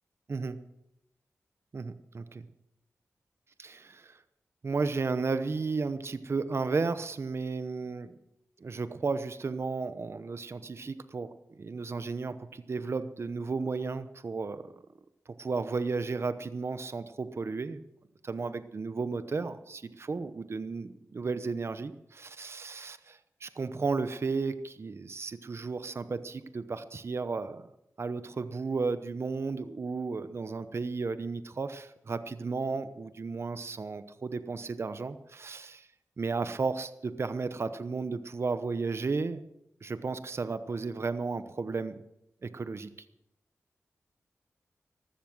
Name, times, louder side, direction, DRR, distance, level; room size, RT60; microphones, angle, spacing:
voice 1, 1.7-2.4 3.6-4.2 4.6-8.2 8.6-11.3 11.6-14.6 15.4-17.8 18.2-27.7 28.0-35.9 36.2-39.4 39.8-42.0 42.4-42.9, right 4 dB, 50° right, 12 dB, 0.9 m, -33 dB
14.5 x 13.0 x 6.2 m, 0.81 s
cardioid pair, 60°, 5 cm